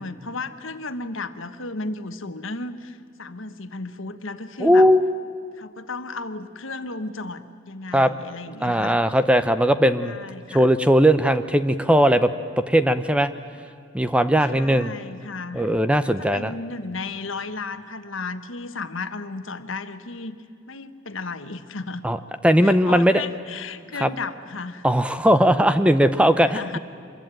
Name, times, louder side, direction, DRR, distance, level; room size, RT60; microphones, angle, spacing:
voice 1, 0.0-4.9 5.6-9.0 10.0-10.7 14.5-15.7 16.0-20.3 20.7-22.0 22.6-24.9 26.3-26.8, left 3 dB, 75° left, 10 dB, 1.3 m, -34 dB
voice 2, 4.6-5.1 7.9-8.1 8.6-10.2 10.5-12.3 12.6-13.3 13.9-14.9 15.5-16.5 22.0-22.2 22.4-23.2 24.0-24.1 24.8-26.8, equal, 5° right, 11 dB, 0.6 m, -18 dB
26.0 x 22.0 x 9.0 m, 2.4 s
head